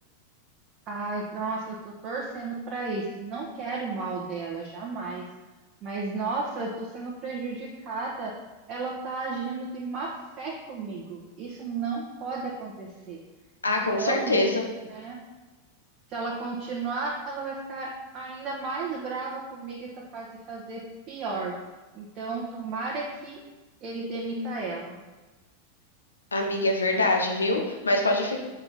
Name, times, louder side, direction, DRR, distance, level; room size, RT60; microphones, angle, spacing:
voice 1, 0.9-5.3 5.8-8.3 8.7-13.2 13.7-14.4 14.9-15.2 16.1-21.5 21.9-23.4 23.8-25.0, right 3 dB, 35° right, -4 dB, 1.4 m, -33 dB
voice 2, 13.6-14.6 26.3-28.4, left 2 dB, 75° left, 2 dB, 1.1 m, -24 dB
6.8 x 4.5 x 5.6 m, 1.2 s
figure-of-eight pair, 90°, 0 cm